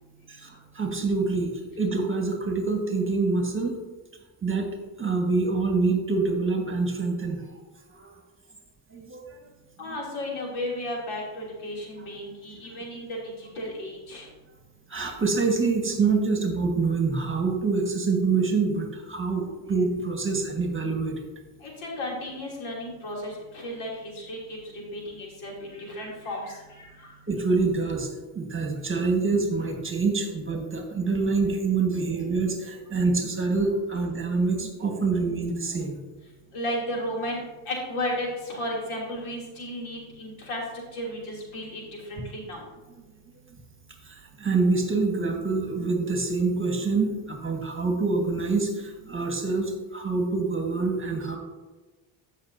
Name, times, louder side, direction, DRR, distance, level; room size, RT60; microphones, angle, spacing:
voice 1, 0.3-3.8 4.4-7.5 7.9-8.1 8.9-9.3 9.9-10.0 14.9-21.2 27.3-28.1 28.3-36.0 44.0-51.4, right 4 dB, 25° right, 3 dB, 1.5 m, -26 dB
voice 2, 9.8-13.2 13.5-14.2 21.6-23.9 24.2-24.6 24.9-27.1 36.5-40.6 40.9-41.8 42.1-42.6, left 1 dB, 75° left, -2 dB, 3.0 m, -34 dB
13.5 x 5.8 x 2.7 m, 1.2 s
supercardioid pair, 85°, 50 cm